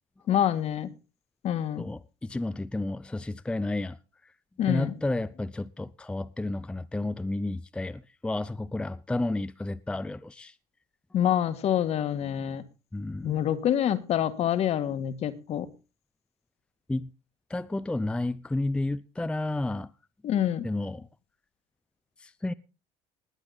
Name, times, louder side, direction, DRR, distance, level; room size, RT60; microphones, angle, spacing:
voice 1, 0.3-0.9 1.4-1.8 4.6-4.9 11.1-12.6 13.2-15.7 20.2-20.6, left 10 dB, 50° left, 1.6 m, -26 dB
voice 2, 1.8-4.3 4.7-10.6 12.9-13.4 16.9-17.1 17.5-19.9 20.6-21.1 22.2-22.5, left 2 dB, 5° left, 0.5 m, -31 dB
20.0 x 8.3 x 4.0 m
supercardioid pair, 100°, 13 cm